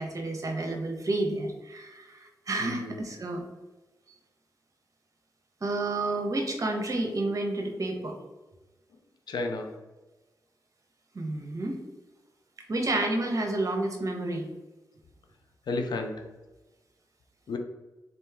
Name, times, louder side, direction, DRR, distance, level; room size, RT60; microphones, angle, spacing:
voice 1, 0.0-3.4 5.6-8.2 11.1-11.8 12.7-14.5, right 2 dB, 45° right, 3 dB, 0.9 m, -30 dB
voice 2, 2.6-3.0 9.3-9.8 15.7-16.3 17.5-17.6, left 3 dB, 70° left, 5 dB, 0.6 m, -32 dB
3.9 x 3.0 x 3.5 m, 1.1 s
cardioid pair, 60°, 8 cm